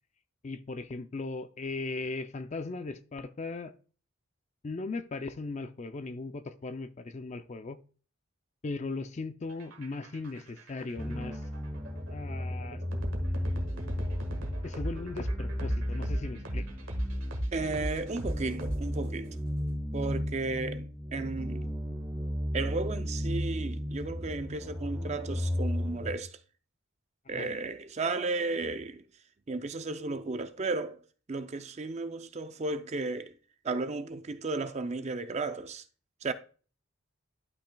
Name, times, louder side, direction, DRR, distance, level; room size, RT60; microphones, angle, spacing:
voice 1, 0.4-3.7 4.6-7.8 8.6-11.4 12.1-12.8 14.6-16.7 27.3-27.5, left 3 dB, 30° left, 0.4 m, -38 dB
sound 1, 9.5-19.3, right 1 dB, 65° right, 1.6 m, -37 dB
sound 2, 11.0-26.1, equal, 5° right, 1.0 m, -35 dB
voice 2, 17.5-19.4 19.9-21.7 22.5-26.4 27.3-29.0 29.5-31.0 31.3-33.3 33.6-35.8 36.2-36.3, right 3 dB, 30° right, 0.4 m, -34 dB
11.5 x 5.8 x 2.2 m
head